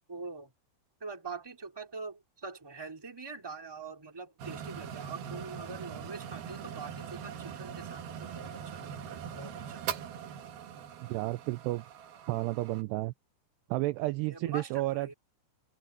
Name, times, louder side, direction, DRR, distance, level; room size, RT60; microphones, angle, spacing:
voice 1, 0.1-0.5 1.0-9.8 14.3-15.1, right 4 dB, 5° right, 2.1 m, -44 dB
sound 1, 4.4-12.8, right 8 dB, 65° right, 3.2 m, -42 dB
voice 2, 11.0-11.9 12.3-13.1 13.7-15.1, right 19 dB, 85° right, 2.4 m, -32 dB
omnidirectional pair, 5.3 m